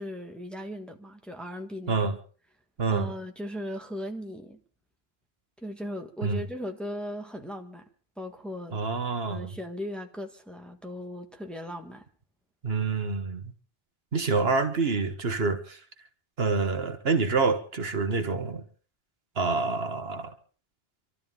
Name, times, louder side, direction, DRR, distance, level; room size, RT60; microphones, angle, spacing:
voice 1, 0.0-2.0 2.9-4.6 5.6-7.9 8.2-8.8 9.3-12.1, equal, ahead, 3 dB, 1.5 m, -38 dB
voice 2, 8.7-9.5 12.6-13.4 14.1-15.8 16.4-18.6 19.4-20.3, right 4 dB, 70° right, 8 dB, 1.6 m, -27 dB
26.0 x 12.5 x 3.8 m, 0.40 s
omnidirectional pair, 1.1 m